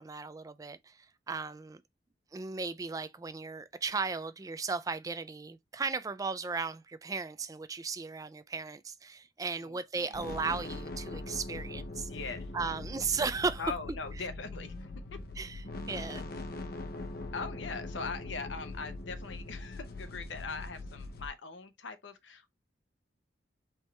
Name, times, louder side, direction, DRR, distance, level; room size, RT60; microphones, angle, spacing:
voice 1, 0.0-1.8 2.3-12.1 12.5-13.6 15.4-15.6 15.9-16.2, right 4 dB, 20° right, 0.3 m, -36 dB
voice 2, 9.6-10.2 12.1-13.0 13.6-15.2 17.3-22.5, left 4 dB, 90° left, 0.8 m, -41 dB
sound 1, 10.1-21.3, left 2 dB, 55° left, 0.6 m, -41 dB
4.4 x 3.3 x 3.1 m
head